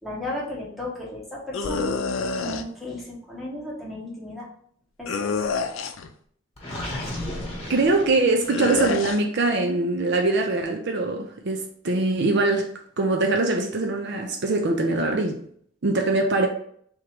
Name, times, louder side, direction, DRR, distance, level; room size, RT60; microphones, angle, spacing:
voice 1, 0.0-2.0 2.4-4.5 5.0-5.3, left 1 dB, ahead, 1.4 m, -34 dB
sound 1, 1.5-2.6 5.1-6.1 8.5-9.2, left 4 dB, 85° left, 0.5 m, -27 dB
Gurgling, 6.6-8.7, left 1 dB, 30° left, 1.6 m, -34 dB
voice 2, 7.7-12.7 13.0-15.4 15.8-16.5, right 2 dB, 60° right, 0.6 m, -23 dB
3.6 x 3.0 x 4.6 m
head